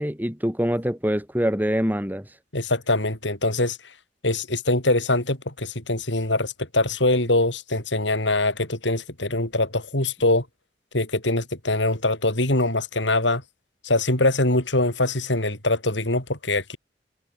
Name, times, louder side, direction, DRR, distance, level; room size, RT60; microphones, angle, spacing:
voice 1, 0.0-2.2, equal, 10° right, 6.6 m, -24 dB
voice 2, 2.5-3.8 4.2-10.4 10.9-13.4 13.8-16.8, left 2 dB, 85° left, 7.5 m, -23 dB
head